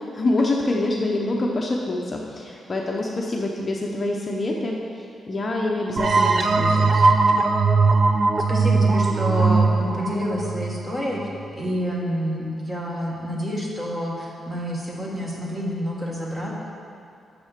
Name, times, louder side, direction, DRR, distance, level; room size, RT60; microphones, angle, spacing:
voice 1, 0.0-4.8 5.3-7.1, left 2 dB, 30° left, -1 dB, 0.7 m, -25 dB
sound 1, 6.0-11.4, right 3 dB, 40° right, 0.4 m, -19 dB
voice 2, 8.5-16.5, equal, 15° right, -3 dB, 1.5 m, -28 dB
7.5 x 6.6 x 5.9 m, 2.5 s
wide cardioid pair, 145°, 0 cm